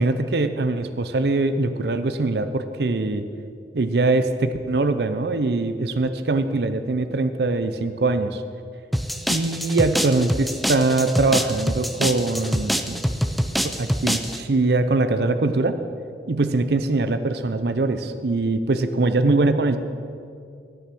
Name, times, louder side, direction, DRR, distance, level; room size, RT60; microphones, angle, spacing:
voice 1, 0.0-3.2 3.7-8.4 9.3-13.0 13.6-15.8 16.3-19.8, right 2 dB, 60° right, 10 dB, 0.6 m, -22 dB
sound 1, 8.9-14.4, equal, ahead, 0.3 m, -25 dB
13.0 x 6.7 x 6.0 m, 2.4 s
head